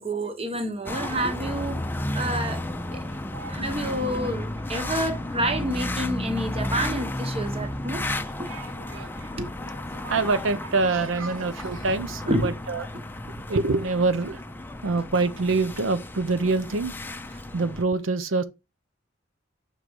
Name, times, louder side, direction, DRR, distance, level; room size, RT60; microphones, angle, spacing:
voice 1, 0.0-1.8 2.1-2.6 2.9-3.0 3.5-8.0 8.4-8.5 9.4-9.5 12.3-12.5, right 1 dB, 30° right, 1.1 m, -28 dB
sound 1, 0.9-17.8, left 1 dB, 10° left, 0.5 m, -33 dB
voice 2, 3.0-3.6 8.5-9.3 9.9-12.9 13.5-14.4 14.8-16.9 17.5-18.4, right 3 dB, 80° right, 0.6 m, -26 dB
6.8 x 3.8 x 4.7 m
head